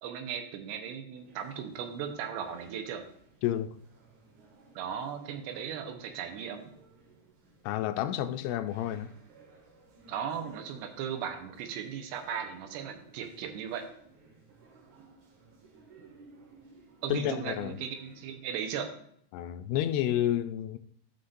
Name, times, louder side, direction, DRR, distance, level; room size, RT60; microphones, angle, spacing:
voice 1, 0.0-3.0 4.8-6.7 10.1-13.8 17.0-19.1, right 8 dB, 90° right, 3.1 m, -37 dB
sound 1, 1.1-18.4, right 3 dB, 60° right, 2.3 m, -58 dB
voice 2, 3.4-3.7 7.6-9.1 17.1-17.8 19.3-20.8, left 12 dB, 85° left, 2.6 m, -30 dB
13.0 x 5.7 x 2.6 m
omnidirectional pair, 4.7 m